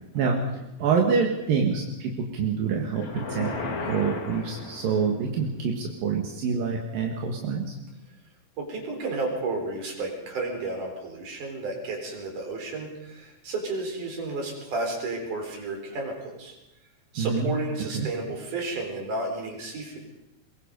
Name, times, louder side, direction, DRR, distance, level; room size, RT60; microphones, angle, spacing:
voice 1, 0.8-3.5 3.8-7.8 17.2-17.5 17.9-18.1, right 5 dB, 75° right, 1 dB, 3.5 m, -26 dB
sound 1, 2.9-5.3, left 3 dB, 80° left, 4.5 m, -34 dB
voice 2, 8.6-16.6 17.1-20.0, right 3 dB, 60° right, 2 dB, 5.4 m, -32 dB
22.5 x 22.5 x 5.4 m, 0.96 s
omnidirectional pair, 4.0 m